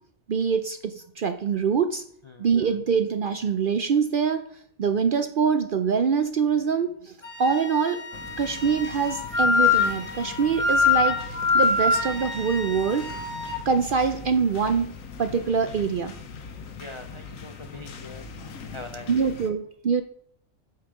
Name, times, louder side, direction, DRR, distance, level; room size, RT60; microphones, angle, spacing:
voice 1, 0.3-2.0 2.4-4.4 4.8-8.0 8.4-13.1 13.7-14.9 15.2-16.2 19.1-20.0, right 6 dB, 60° right, 9 dB, 0.6 m, -24 dB
Wind instrument woodwind instrument, 7.2-13.6, left 4 dB, 25° left, 1.3 m, -25 dB
sound 1, 8.1-19.5, left 4 dB, 80° left, 1.3 m, -41 dB
voice 2, 16.8-18.2 18.7-19.1, left 2 dB, 50° left, 6 dB, 0.3 m, -42 dB
8.9 x 5.6 x 4.8 m, 0.62 s
omnidirectional pair, 1.4 m